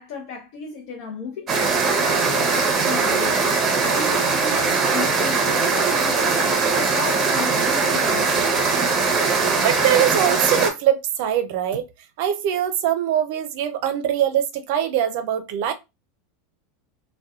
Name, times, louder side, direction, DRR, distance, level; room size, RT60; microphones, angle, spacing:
voice 1, 0.0-1.5 1.8-3.6 3.9-6.5 6.7-8.7, left 4 dB, 60° left, 0.6 m, -34 dB
sound 1, 1.5-10.7, right 4 dB, 30° right, 0.8 m, -20 dB
voice 2, 9.4-11.9 12.2-15.7, right 10 dB, 65° right, 0.5 m, -22 dB
2.7 x 2.2 x 2.3 m
supercardioid pair, 120°, 0 cm